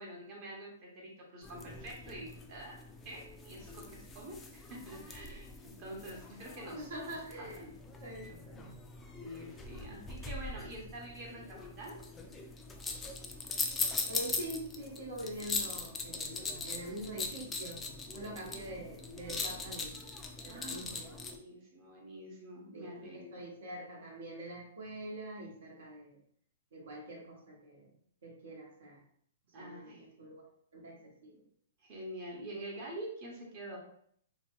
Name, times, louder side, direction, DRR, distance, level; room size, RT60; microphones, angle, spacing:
voice 1, 0.0-2.8 3.0-7.7 8.2-8.4 9.1-12.0 18.5-18.8 20.5-23.4 29.5-30.0 31.8-33.8, right 1 dB, 40° right, -2 dB, 0.9 m, -46 dB
sound 1, 1.4-21.4, left 4 dB, 15° left, 0.3 m, -41 dB
voice 2, 6.8-7.7 8.0-8.7 14.1-17.8 18.1-19.9 20.4-21.2 22.7-26.2 26.7-27.9 28.2-29.0 29.6-30.4 30.7-31.4, right 1 dB, 75° right, -3 dB, 1.0 m, -45 dB
2.8 x 2.2 x 3.0 m, 0.64 s
hypercardioid pair, 140°, 0 cm